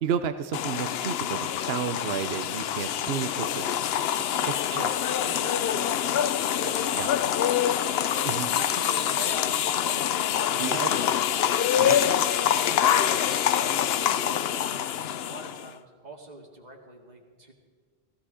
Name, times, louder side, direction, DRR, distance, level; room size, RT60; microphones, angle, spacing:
voice 1, 0.0-3.6 4.7-4.9 7.0-7.1 8.2-8.5 10.6-10.9 11.8-12.0, right 8 dB, 75° right, 10 dB, 1.0 m, -31 dB
sound 1, 0.5-15.7, left 10 dB, 75° left, 0.8 m, -25 dB
voice 2, 2.9-3.5 4.2-7.3 8.1-9.5 9.8-11.2 12.0-13.8 14.0-17.5, right 1 dB, 40° right, 1 dB, 2.3 m, -45 dB
17.0 x 15.5 x 5.0 m, 1.5 s
omnidirectional pair, 1.0 m